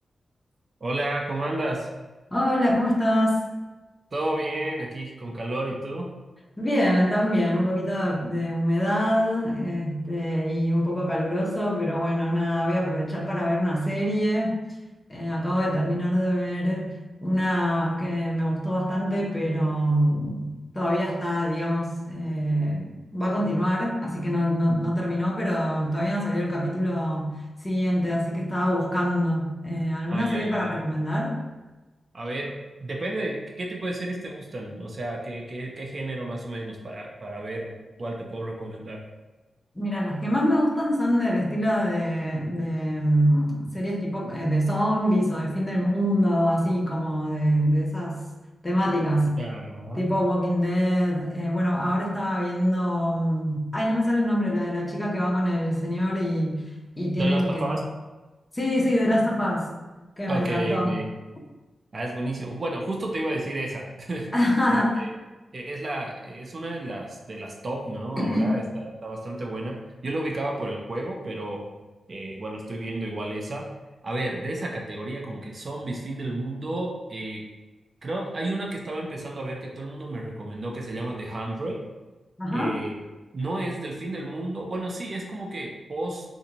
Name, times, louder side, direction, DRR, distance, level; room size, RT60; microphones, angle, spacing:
voice 1, 0.8-1.9 4.1-6.1 30.1-30.8 32.1-32.5 32.8-37.7 38.0-39.0 49.4-50.1 57.2-57.8 60.3-61.0 61.9-64.3 64.7-65.1 65.5-71.6 72.1-73.7 74.0-77.4 78.0-81.8 82.5-82.9 83.3-86.2, right 1 dB, 45° right, -1 dB, 0.4 m, -32 dB
voice 2, 2.3-3.4 6.6-14.6 15.1-16.9 17.2-27.3 27.6-31.4 39.8-48.2 48.6-49.3 49.9-56.6 57.0-57.7 58.5-59.7 60.2-61.0 64.3-65.0 68.2-68.5 82.4-82.8, equal, 20° left, -3 dB, 0.7 m, -24 dB
2.6 x 2.5 x 2.9 m, 1.2 s
wide cardioid pair, 90°, 0 cm